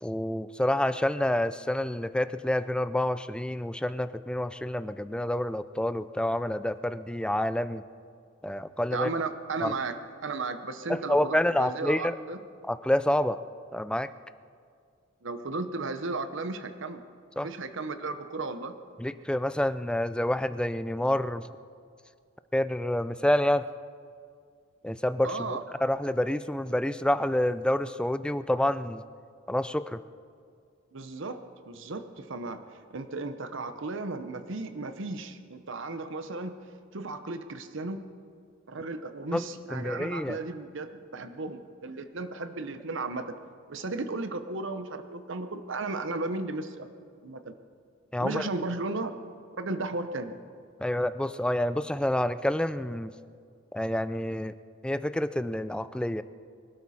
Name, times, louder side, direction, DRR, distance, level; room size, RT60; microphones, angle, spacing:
voice 1, 0.0-7.8 8.4-9.1 9.6-9.7 10.9-12.2 12.6-13.4 13.7-14.1 17.4-17.5 19.0-21.5 22.5-23.7 24.8-29.0 29.5-30.0 39.3-39.4 39.7-40.4 48.1-48.5 50.8-53.1 53.7-54.5 54.8-56.2, left 1 dB, 5° left, 13 dB, 0.4 m, -28 dB
voice 2, 8.9-12.4 15.2-17.0 17.4-18.7 25.2-25.6 30.9-31.4 31.7-32.6 32.9-36.5 36.9-38.0 38.7-43.4 43.7-46.9 47.2-47.5 48.2-49.2 49.5-50.3, right 3 dB, 60° right, 9 dB, 0.9 m, -35 dB
24.5 x 12.5 x 4.3 m, 2.2 s
head